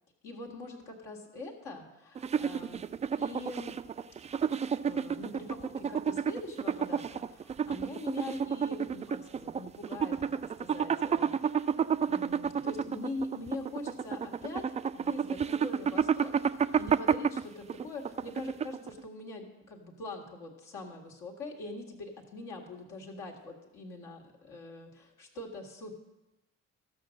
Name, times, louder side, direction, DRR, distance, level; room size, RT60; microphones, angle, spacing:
voice 1, 0.2-2.8 3.2-3.8 4.8-11.7 12.0-14.7 14.9-26.0, left 2 dB, 70° left, 1 dB, 1.7 m, -43 dB
sound 1, 2.2-19.0, right 7 dB, 20° right, 0.3 m, -31 dB
14.0 x 6.5 x 6.3 m, 0.97 s
figure-of-eight pair, 40°, 36 cm